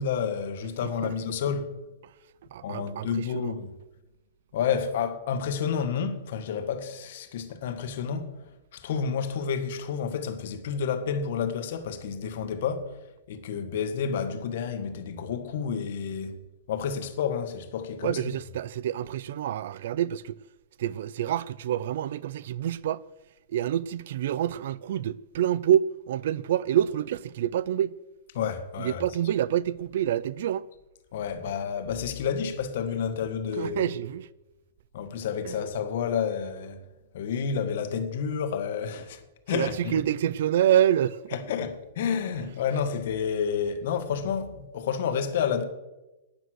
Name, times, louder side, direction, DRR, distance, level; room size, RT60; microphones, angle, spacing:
voice 1, 0.0-1.7 2.6-3.7 4.5-8.3 8.7-12.9 13.3-16.3 16.7-18.3 28.3-29.0 31.1-33.9 34.9-36.8 37.1-39.2 39.5-40.0 41.3-45.6, left 7 dB, 55° left, 1.6 m, -30 dB
voice 2, 0.8-1.1 2.5-3.5 18.0-20.4 20.8-23.0 23.5-27.9 28.8-30.6 33.6-34.3 35.5-35.6 39.5-41.2, right 11 dB, 60° right, 0.4 m, -27 dB
12.5 x 9.6 x 6.4 m
supercardioid pair, 165°, 0 cm